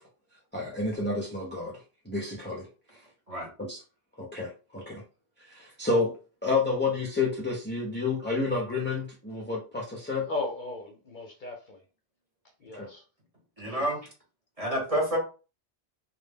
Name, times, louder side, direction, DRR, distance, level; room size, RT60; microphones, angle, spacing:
voice 1, 0.5-1.8 2.1-2.7 3.6-3.8 4.2-5.0 5.5-6.1 6.4-10.3 12.8-12.9 13.6-13.7, left 3 dB, 15° left, 0.4 m, -30 dB
voice 2, 10.0-11.8 12.6-13.1 13.6-13.8, left 2 dB, 55° left, 0.6 m, -37 dB
voice 3, 13.6-14.0 14.6-15.2, equal, 35° right, 0.9 m, -28 dB
2.2 x 2.1 x 3.3 m
omnidirectional pair, 1.1 m